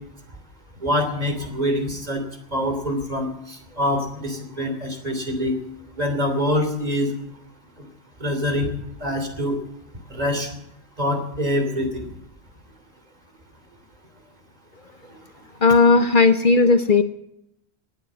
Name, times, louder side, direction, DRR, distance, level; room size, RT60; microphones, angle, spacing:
voice 1, 0.8-2.2 2.5-5.6 6.0-7.1 8.2-8.7 9.0-9.6 10.1-10.5 11.0-12.1, left 1 dB, 35° right, 5 dB, 3.3 m, -25 dB
voice 2, 15.6-17.0, left 4 dB, 50° left, 9 dB, 1.0 m, -15 dB
18.0 x 10.0 x 7.5 m, 0.78 s
omnidirectional pair, 1.1 m